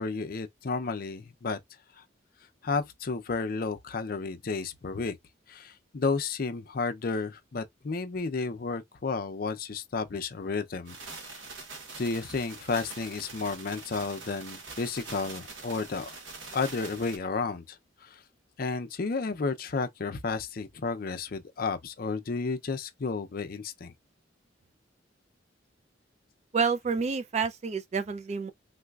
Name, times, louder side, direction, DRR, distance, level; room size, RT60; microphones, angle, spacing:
voice 1, 0.0-1.6 2.6-5.2 5.5-11.0 11.2-11.4 12.0-16.1 16.5-17.8 18.0-18.2 18.6-23.9, left 4 dB, 50° left, 0.5 m, -32 dB
sound 1, 10.9-17.2, right 3 dB, 85° right, 1.1 m, -44 dB
voice 2, 26.5-28.5, right 5 dB, 35° right, 0.3 m, -29 dB
3.9 x 2.3 x 2.3 m
head